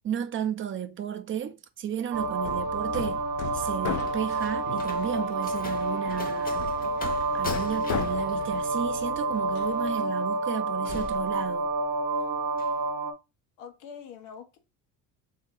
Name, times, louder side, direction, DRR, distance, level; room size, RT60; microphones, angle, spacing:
voice 1, 0.0-3.2 3.5-6.7 7.3-11.7, right 9 dB, 30° right, 0.5 m, -33 dB
Hammer, 2.1-10.0, left 10 dB, 50° left, 0.5 m, -38 dB
sound 1, 2.1-13.1, right 3 dB, 70° right, 0.8 m, -29 dB
Slam, 3.5-12.0 12.3-12.8, left 3 dB, 20° left, 0.8 m, -43 dB
voice 2, 13.6-14.6, left 7 dB, 85° left, 1.1 m, -44 dB
3.5 x 2.8 x 3.8 m
supercardioid pair, 100°, 40 cm